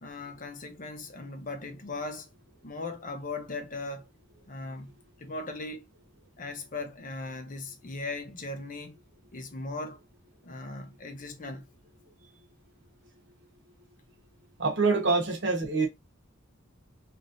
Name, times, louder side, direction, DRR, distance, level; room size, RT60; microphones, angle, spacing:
voice 1, 0.0-2.3 2.6-4.1 4.5-4.9 5.2-5.8 6.4-9.0 9.3-10.0 10.4-11.7 15.4-15.5, left 3 dB, 40° left, 0.5 m, -38 dB
voice 2, 14.6-15.9, right 4 dB, 55° right, 0.8 m, -25 dB
3.0 x 2.5 x 2.5 m
head